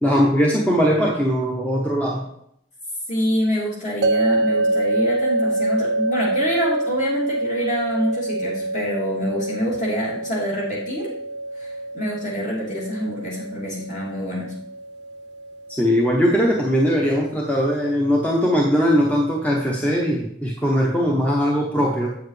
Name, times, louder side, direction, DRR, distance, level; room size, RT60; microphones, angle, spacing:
voice 1, 0.0-2.2 15.8-22.2, equal, 10° left, -2 dB, 0.8 m, -20 dB
voice 2, 3.1-11.1 11.6-14.5, equal, 45° left, -5 dB, 2.8 m, -26 dB
sound 1, 4.0-17.1, right 2 dB, 65° right, 0.5 m, -26 dB
7.7 x 7.1 x 3.2 m, 0.74 s
head